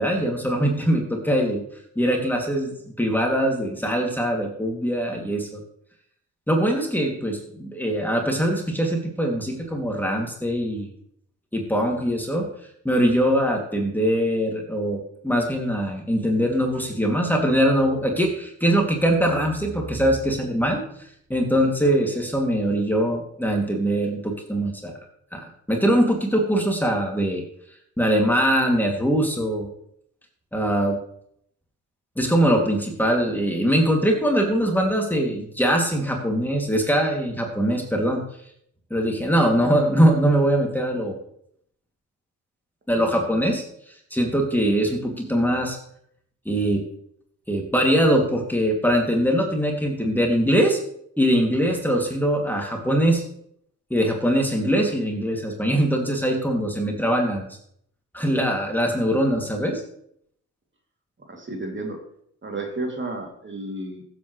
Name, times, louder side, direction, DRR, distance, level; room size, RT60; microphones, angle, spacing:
voice 1, 0.0-1.6 2.0-5.6 6.5-10.9 11.5-12.5 12.8-24.9 25.3-27.4 28.0-29.7 30.5-31.0 32.2-38.2 38.9-41.2 42.9-43.6 44.1-45.8 46.5-46.8 47.5-50.8 51.2-53.2 53.9-57.5 58.1-59.8, equal, 5° left, 1 dB, 2.6 m, -22 dB
voice 2, 61.3-62.0 62.4-64.0, right 2 dB, 35° right, 1 dB, 2.9 m, -32 dB
15.5 x 7.9 x 3.2 m, 0.68 s
supercardioid pair, 55°, 35 cm